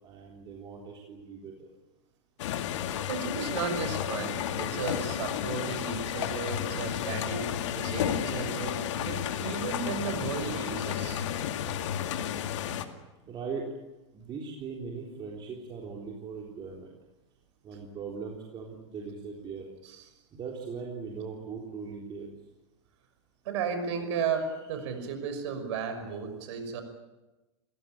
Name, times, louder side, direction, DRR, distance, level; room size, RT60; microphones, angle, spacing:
voice 1, 0.0-1.7 13.2-13.7 14.1-16.9 17.6-19.7 20.3-22.3, right 5 dB, 30° right, -1 dB, 3.9 m, -39 dB
sound 1, 2.4-12.8, left 9 dB, 70° left, 2.2 m, -32 dB
voice 2, 3.1-7.5 7.7-11.2 23.4-26.8, right 6 dB, 70° right, 8 dB, 5.9 m, -34 dB
29.5 x 16.5 x 9.0 m, 1.1 s
supercardioid pair, 130°, 16 cm